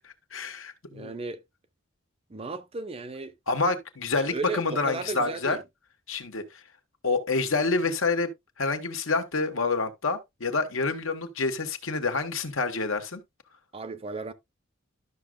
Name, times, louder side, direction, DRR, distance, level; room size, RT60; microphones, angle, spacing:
voice 1, 0.0-1.1 3.5-5.6 6.1-6.4 7.0-8.3 8.6-13.2, left 3 dB, 75° left, 1.3 m, -28 dB
voice 2, 0.8-1.4 2.3-3.4 4.2-5.6 13.7-14.3, right 3 dB, 30° right, 0.6 m, -35 dB
12.5 x 6.2 x 2.3 m
head